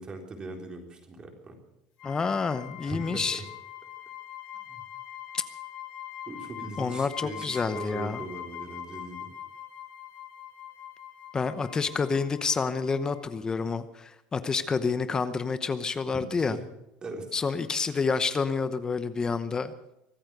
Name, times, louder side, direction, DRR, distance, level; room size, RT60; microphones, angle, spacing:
voice 1, 0.0-1.6 2.8-3.4 4.6-4.8 6.3-9.3 16.1-16.6 17.0-17.3 18.1-18.3, right 3 dB, 25° right, 3 dB, 3.7 m, -40 dB
sound 1, 2.0-13.4, left 11 dB, 70° left, 7.3 m, -43 dB
voice 2, 2.0-3.4 5.3-5.4 6.8-8.2 11.3-16.6 17.3-19.7, left 5 dB, 20° left, 12 dB, 0.9 m, -28 dB
24.5 x 8.7 x 6.7 m, 0.90 s
cardioid pair, 140°, 4 cm